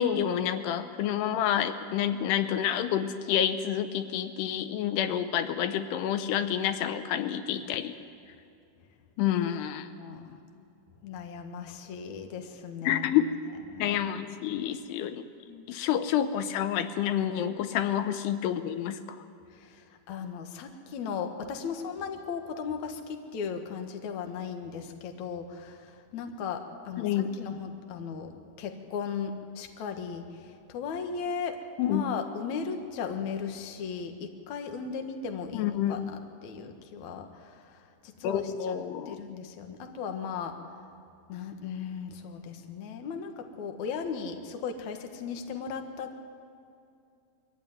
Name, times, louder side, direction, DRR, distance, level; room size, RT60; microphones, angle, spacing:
voice 1, 0.0-8.0 9.2-9.9 12.8-13.3 13.8-15.2 15.7-19.0 27.0-27.4 31.8-32.1 35.5-36.1 38.2-39.2, left 10 dB, 85° left, 10 dB, 2.8 m, -28 dB
voice 2, 9.9-10.4 11.0-13.1 13.7-14.5 15.5-15.7 19.5-31.6 31.8-38.8 39.1-40.9 41.3-46.2, left 6 dB, 60° left, 5 dB, 2.3 m, -37 dB
22.5 x 14.5 x 9.2 m, 2.7 s
omnidirectional pair, 4.8 m